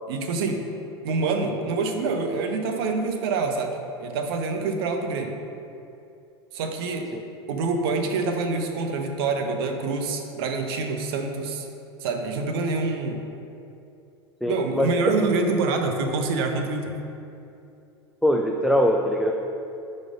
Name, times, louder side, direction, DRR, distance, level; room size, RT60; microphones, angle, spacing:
voice 1, 0.1-0.7 1.0-5.3 6.5-7.1 7.5-11.7 12.0-13.2 14.5-17.0, right 3 dB, 60° right, 4 dB, 0.7 m, -26 dB
voice 2, 14.4-14.9 18.2-19.3, equal, ahead, 1 dB, 0.3 m, -22 dB
4.8 x 4.2 x 5.1 m, 2.7 s
figure-of-eight pair, 85°, 14 cm